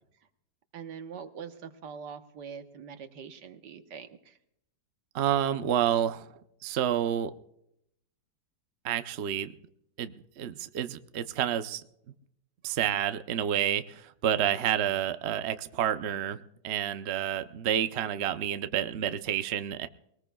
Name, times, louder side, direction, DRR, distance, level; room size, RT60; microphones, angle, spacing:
voice 1, 0.7-4.4, right 6 dB, 75° right, 8 dB, 1.7 m, -43 dB
voice 2, 5.1-6.3 6.6-7.3 8.8-9.5 10.0-11.8 12.6-19.9, right 10 dB, 55° right, 10 dB, 0.7 m, -29 dB
22.0 x 19.5 x 2.3 m, 0.76 s
omnidirectional pair, 1.9 m